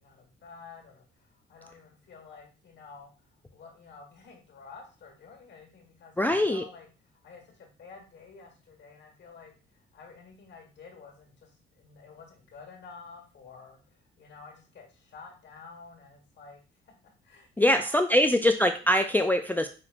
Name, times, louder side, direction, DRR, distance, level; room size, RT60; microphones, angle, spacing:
voice 1, 0.0-16.9 17.2-18.4, left 4 dB, 65° left, 2 dB, 1.5 m, -50 dB
voice 2, 6.2-6.6 17.6-19.7, left 1 dB, 10° left, 6 dB, 0.3 m, -23 dB
5.8 x 3.0 x 2.5 m, 0.35 s
cardioid pair, 90°, 20 cm